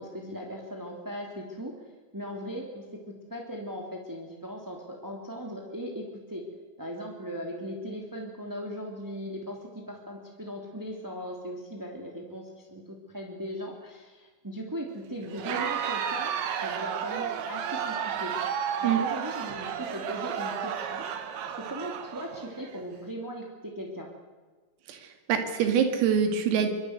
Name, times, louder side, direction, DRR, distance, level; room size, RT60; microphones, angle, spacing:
voice 1, 0.0-1.7 2.1-6.4 6.8-16.3 16.6-18.3 18.8-24.1, equal, 5° right, 0 dB, 1.7 m, -38 dB
Crowd, 15.3-22.8, right 8 dB, 65° right, 4.0 m, -32 dB
voice 2, 24.9-26.7, right 7 dB, 85° right, 6 dB, 5.1 m, -25 dB
25.0 x 24.0 x 8.2 m, 1.3 s
omnidirectional pair, 5.9 m